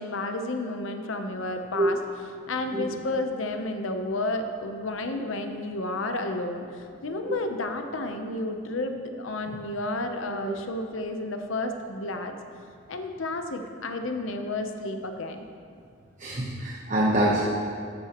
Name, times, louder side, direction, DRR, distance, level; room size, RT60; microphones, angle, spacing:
voice 1, 0.0-2.0 2.5-12.3 12.9-15.4, left 2 dB, 70° left, 6 dB, 0.8 m, -31 dB
voice 2, 16.2-17.4, right 1 dB, 40° right, -4 dB, 1.0 m, -25 dB
13.5 x 10.5 x 3.0 m, 2.3 s
head